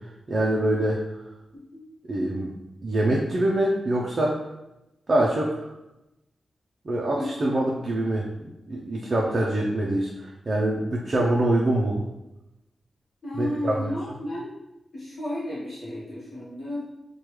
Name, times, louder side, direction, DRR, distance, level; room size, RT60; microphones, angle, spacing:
voice 1, 0.3-1.0 2.1-2.5 2.8-4.4 5.1-5.7 6.8-8.3 8.7-12.0 13.4-13.8, right 1 dB, 35° right, -2 dB, 0.4 m, -24 dB
voice 2, 13.2-14.5 14.9-16.8, left 1 dB, 40° left, -8 dB, 1.0 m, -33 dB
4.8 x 2.2 x 3.1 m, 0.93 s
wide cardioid pair, 170°, 0 cm